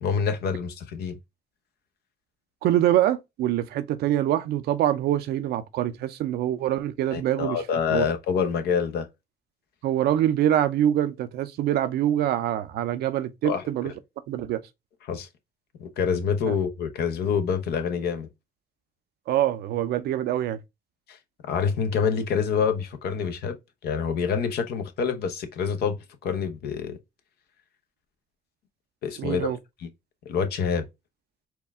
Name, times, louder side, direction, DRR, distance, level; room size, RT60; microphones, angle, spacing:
voice 1, 0.0-1.2 7.1-9.1 13.4-13.6 15.1-15.3 15.8-18.3 21.1-21.2 21.4-23.6 23.8-27.0 29.0-29.9 30.3-30.9, left 6 dB, 75° left, 0.8 m, -27 dB
voice 2, 2.6-7.6 7.9-8.1 9.8-13.9 14.3-14.6 16.5-16.6 19.3-20.6 29.2-29.6, right 12 dB, 80° right, 0.6 m, -24 dB
4.4 x 2.3 x 3.5 m
supercardioid pair, 60°, 16 cm